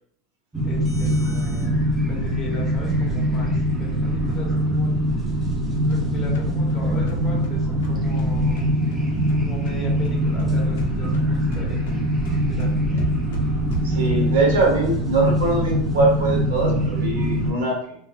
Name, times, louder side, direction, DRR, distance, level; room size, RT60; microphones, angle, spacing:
sound 1, 0.5-17.5, equal, 15° right, 0.7 m, -23 dB
voice 1, 0.6-1.8 2.1-4.9 5.7-8.6 9.4-11.9 12.3-12.8, left 2 dB, 30° left, -2 dB, 1.1 m, -38 dB
sound 2, 5.5-9.8 10.0-14.4, right 3 dB, 80° left, 0.6 m, -35 dB
voice 2, 13.8-18.0, right 2 dB, 80° right, -1 dB, 1.1 m, -22 dB
2.9 x 2.2 x 2.9 m, 0.65 s
supercardioid pair, 130°, 0 cm